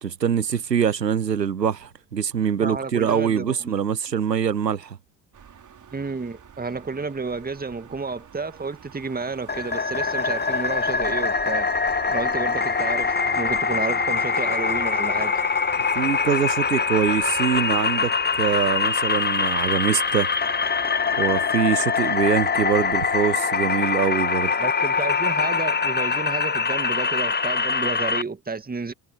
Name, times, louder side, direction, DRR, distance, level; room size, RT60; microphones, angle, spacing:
voice 1, 0.0-5.0 15.9-20.3 21.2-24.5, right 7 dB, 90° right, 0.6 m, -24 dB
voice 2, 2.6-3.7 5.9-11.7 12.1-15.4 24.6-28.9, right 4 dB, 20° right, 2.2 m, -31 dB
sound 1, 5.3-23.4, right 8 dB, 35° right, 3.9 m, -48 dB
sound 2, 9.5-28.2, left 5 dB, 20° left, 1.7 m, -23 dB
figure-of-eight pair, 50°, 48 cm